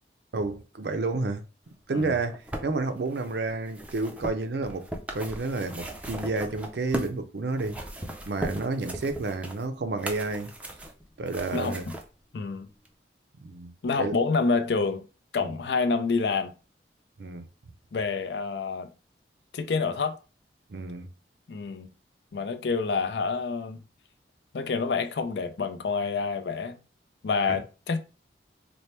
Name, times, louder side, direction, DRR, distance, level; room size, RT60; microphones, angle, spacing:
voice 1, 0.3-1.4 1.9-7.8 8.3-10.5 11.2-11.9 13.4-14.2 15.4-15.5 17.2-17.4 20.7-21.1 27.5-27.6, right 3 dB, 70° right, 0.5 m, -30 dB
sound 1, 2.0-7.2 7.5-12.1 12.9-13.0, right 1 dB, 10° right, 0.4 m, -37 dB
voice 2, 11.5-11.9 12.3-12.7 13.8-15.1 15.3-16.5 17.9-18.9 19.5-20.2 21.5-21.9 22.3-23.8 24.5-26.8 27.2-28.0, left 4 dB, 70° left, 0.4 m, -28 dB
4.3 x 2.0 x 3.2 m
head